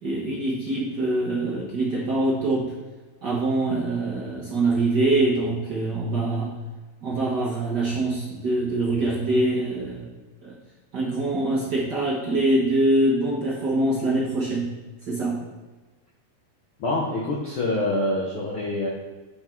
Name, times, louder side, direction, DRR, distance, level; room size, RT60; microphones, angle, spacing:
voice 1, 0.0-2.7 3.2-6.5 7.0-10.1 10.4-10.5 10.9-14.7 15.1-15.4, right 2 dB, 55° right, -6 dB, 1.1 m, -24 dB
voice 2, 16.8-18.9, left 1 dB, 70° left, -3 dB, 1.2 m, -25 dB
7.5 x 5.9 x 4.5 m, 1.3 s
omnidirectional pair, 3.8 m